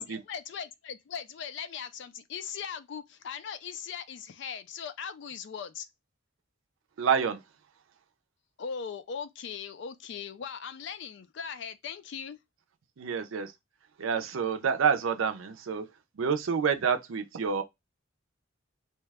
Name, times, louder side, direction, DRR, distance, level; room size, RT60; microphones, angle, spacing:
voice 1, 0.1-5.9 8.6-12.4, left 7 dB, 60° left, 0.3 m, -39 dB
voice 2, 7.0-7.4 13.0-13.5 14.0-15.9 16.2-17.6, right 6 dB, 85° right, 0.5 m, -28 dB
2.7 x 2.2 x 3.3 m
head